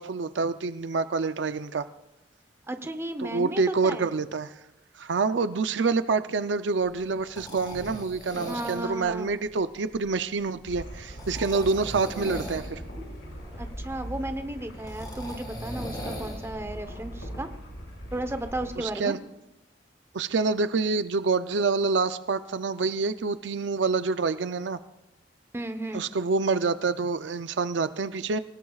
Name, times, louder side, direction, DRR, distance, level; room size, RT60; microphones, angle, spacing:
voice 1, 0.0-1.9 3.2-4.5 5.0-12.8 18.8-19.2 20.1-24.8 25.9-28.4, right 4 dB, 70° right, 12 dB, 0.5 m, -27 dB
voice 2, 2.7-4.1 8.5-9.3 13.6-17.5 18.1-19.1 25.5-26.1, right 1 dB, 15° right, 8 dB, 0.9 m, -34 dB
sound 1, 6.8-16.5, equal, 25° left, 3.9 m, -41 dB
sound 2, 10.6-18.8, equal, 75° left, 6.2 m, -40 dB
27.5 x 17.5 x 2.4 m, 0.90 s
head